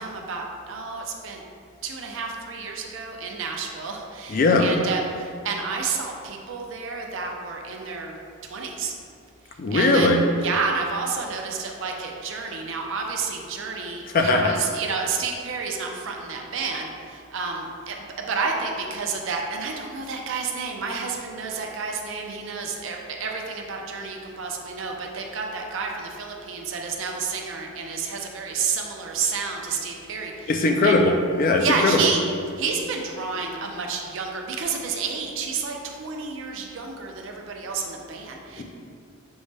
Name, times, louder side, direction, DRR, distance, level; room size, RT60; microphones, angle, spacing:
voice 1, 0.0-1.4 1.8-8.2 8.5-8.9 9.5-10.1 10.4-30.5 30.8-31.0 31.6-32.2 32.6-38.6, right 5 dB, 60° right, 1 dB, 0.5 m, -30 dB
voice 2, 4.3-4.7 9.6-10.2 14.1-14.6 30.5-32.1 38.6-38.7, left 2 dB, 40° left, 4 dB, 0.3 m, -19 dB
6.2 x 2.1 x 3.3 m, 2.2 s
head